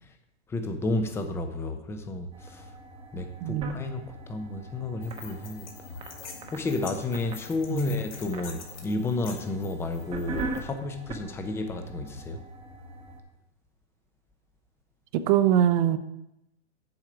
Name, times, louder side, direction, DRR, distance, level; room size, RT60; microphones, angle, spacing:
voice 1, 0.5-2.7 3.1-6.0 6.5-12.4, left 2 dB, 10° left, 0.5 m, -32 dB
sound 1, 2.3-13.2, right 2 dB, 15° right, 0.9 m, -41 dB
voice 2, 3.4-3.8 7.7-8.0 15.1-16.0, right 10 dB, 45° right, 0.7 m, -23 dB
sound 2, 5.0-10.6, left 6 dB, 85° left, 2.3 m, -46 dB
7.7 x 7.2 x 4.9 m
hypercardioid pair, 140°, 34 cm